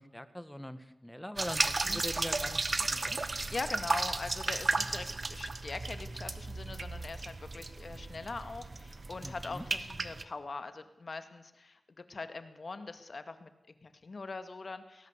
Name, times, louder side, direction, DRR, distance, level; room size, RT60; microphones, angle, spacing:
voice 1, 0.0-3.2 9.2-9.7, equal, 5° left, 12 dB, 1.8 m, -42 dB
sound 1, 1.4-10.2, right 3 dB, 45° right, 1.5 m, -34 dB
voice 2, 3.3-15.1, left 3 dB, 50° left, 10 dB, 2.2 m, -42 dB
20.0 x 18.0 x 8.3 m, 0.89 s
cardioid pair, 65°, 0 cm